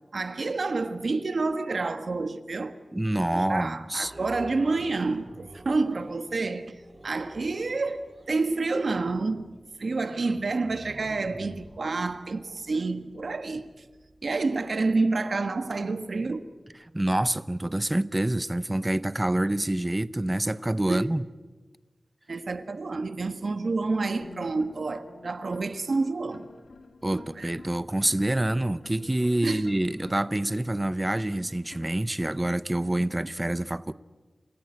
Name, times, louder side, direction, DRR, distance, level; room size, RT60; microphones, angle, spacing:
voice 1, 0.1-2.7 3.3-6.7 7.0-9.5 9.8-13.6 14.2-16.4 20.9-21.1 22.3-26.5 27.1-27.5 29.4-29.7, right 3 dB, 65° right, 1.4 m, -29 dB
voice 2, 2.9-4.1 16.9-21.3 27.0-33.9, right 1 dB, 20° right, 0.7 m, -27 dB
sound 1, 4.0-18.2 18.7-18.8, right 2 dB, 35° right, 3.0 m, -49 dB
sound 2, 24.1-31.8, left 3 dB, 90° left, 2.4 m, -50 dB
29.0 x 16.0 x 9.7 m
wide cardioid pair, 100°, 0 cm